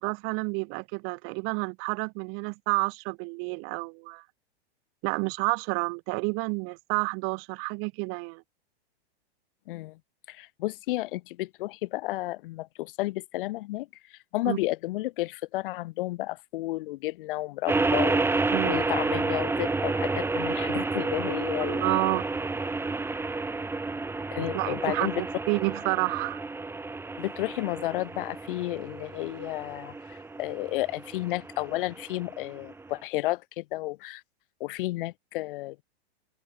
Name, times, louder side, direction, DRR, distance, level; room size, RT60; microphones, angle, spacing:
voice 1, 0.0-4.2 5.0-8.4 14.5-14.6 18.5-18.9 21.6-22.3 24.5-26.4, right 36 dB, 40° right, 6.0 m, -30 dB
voice 2, 9.7-10.0 10.3-21.9 24.3-25.1 27.2-34.2 34.6-35.8, left 18 dB, 55° left, 5.4 m, -32 dB
sound 1, 17.7-33.0, right 3 dB, 5° right, 4.4 m, -30 dB
open air
hypercardioid pair, 135°, 32 cm